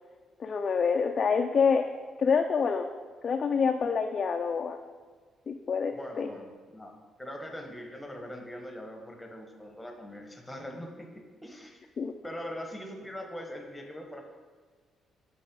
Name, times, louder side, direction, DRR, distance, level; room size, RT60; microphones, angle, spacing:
voice 1, 0.4-1.9 2.2-2.9 3.2-4.8 5.5-6.3 12.0-12.1, left 5 dB, 50° left, 4 dB, 0.3 m, -27 dB
voice 2, 5.9-6.9 7.2-11.8 12.2-14.2, equal, 10° left, 2 dB, 1.1 m, -42 dB
5.2 x 4.2 x 5.2 m, 1.5 s
cardioid pair, 90°, 0 cm